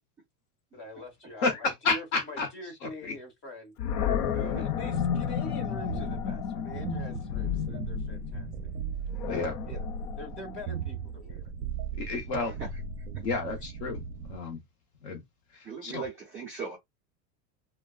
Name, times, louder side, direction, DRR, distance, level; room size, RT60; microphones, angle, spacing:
voice 1, 0.7-3.7 4.3-8.5 9.3-9.8 10.2-11.5, left 2 dB, 25° left, 1.2 m, -44 dB
voice 2, 1.4-2.5 2.8-3.1 9.3-9.5 12.0-12.5 13.2-14.0 14.3-14.6 15.0-15.2 15.5-16.0, left 4 dB, 45° left, 0.8 m, -31 dB
Animal, 3.8-10.9, left 8 dB, 85° left, 0.7 m, -32 dB
sound 1, 4.7-14.4, right 5 dB, 55° right, 0.6 m, -38 dB
voice 3, 12.4-13.2 15.6-16.8, right 5 dB, 5° right, 0.3 m, -40 dB
3.4 x 2.2 x 2.3 m
supercardioid pair, 170°, 45 cm